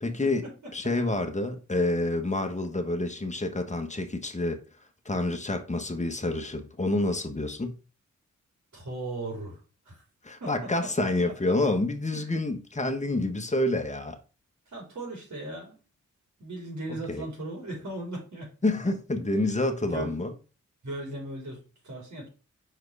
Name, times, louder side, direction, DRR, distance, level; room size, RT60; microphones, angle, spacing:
voice 1, 0.0-0.4 0.7-4.6 5.0-7.7 10.2-14.2 17.1-17.2 18.6-20.3, left 2 dB, 25° left, 1.5 m, -28 dB
voice 2, 8.7-9.6 9.9-10.0 10.4-11.1 11.5-11.6 12.1-12.2 14.7-15.8 16.4-18.5 19.8-20.2 20.8-22.3, right 2 dB, 65° right, 4.0 m, -37 dB
5.6 x 4.7 x 4.8 m
cardioid pair, 50°, 31 cm